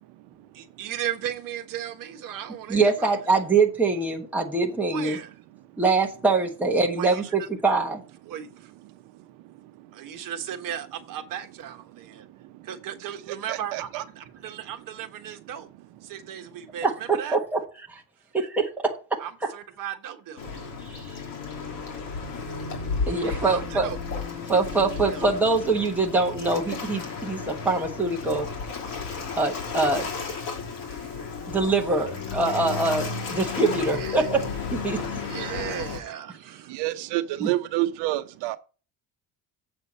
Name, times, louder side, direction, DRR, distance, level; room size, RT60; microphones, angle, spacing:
voice 1, 0.5-3.1 4.9-5.3 7.0-7.2 8.3-8.7 9.9-12.3 12.6-15.7 16.0-16.9 17.2-17.4 19.2-20.5 23.2-24.0 25.1-25.2 30.8-31.2 34.0-34.3 35.2-36.7, right 10 dB, 50° right, 1.4 m, -36 dB
voice 2, 2.7-5.2 5.8-8.0 16.8-18.0 18.3-19.5 20.8-21.2 23.1-23.9 24.5-28.5 29.4-30.1 31.5-34.4 34.7-35.2 37.4-37.5, right 3 dB, 5° right, 1.2 m, -24 dB
voice 3, 8.8-10.3 11.9-12.7 13.0-14.0 14.5-14.6 36.5-38.6, right 16 dB, 80° right, 0.8 m, -31 dB
Waves surf, 20.4-36.0, left 5 dB, 55° left, 3.2 m, -33 dB
7.6 x 6.7 x 4.2 m
cardioid pair, 180°, 41 cm